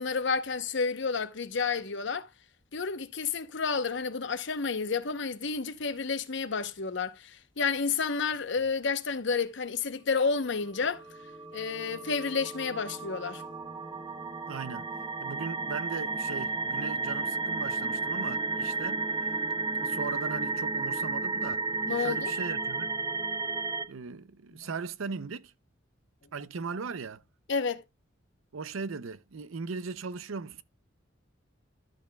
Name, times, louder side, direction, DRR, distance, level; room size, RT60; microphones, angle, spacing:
voice 1, 0.0-2.3 2.7-11.0 11.5-13.4 21.9-22.3 24.6-24.7 27.5-27.8, left 5 dB, 60° left, 0.8 m, -30 dB
sound 1, 10.6-23.9, right 4 dB, 20° right, 0.8 m, -33 dB
voice 2, 14.5-14.9 15.2-19.0 19.8-21.7 22.0-22.9 23.9-25.5 26.3-27.2 28.5-30.6, right 5 dB, 90° right, 0.6 m, -38 dB
13.0 x 6.7 x 2.3 m
head